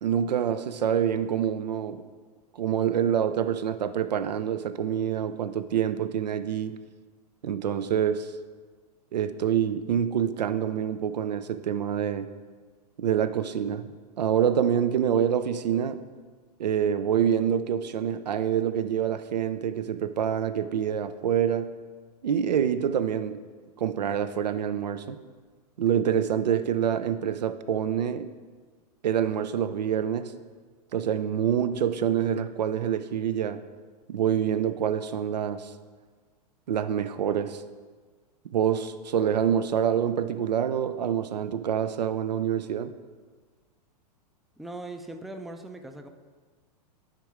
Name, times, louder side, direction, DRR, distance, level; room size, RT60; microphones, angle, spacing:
voice 1, 0.0-2.0 2.5-6.7 7.4-8.3 9.1-12.3 13.0-13.9 14.2-16.0 16.6-21.7 22.2-23.4 23.8-25.2 25.8-28.3 29.0-30.3 30.9-33.6 34.1-35.7 36.7-37.6 38.5-42.9, right 9 dB, 90° right, 12 dB, 0.5 m, -26 dB
voice 2, 44.6-46.1, right 2 dB, ahead, 6 dB, 0.3 m, -40 dB
9.3 x 3.6 x 5.0 m, 1.5 s
hypercardioid pair, 115°, 21 cm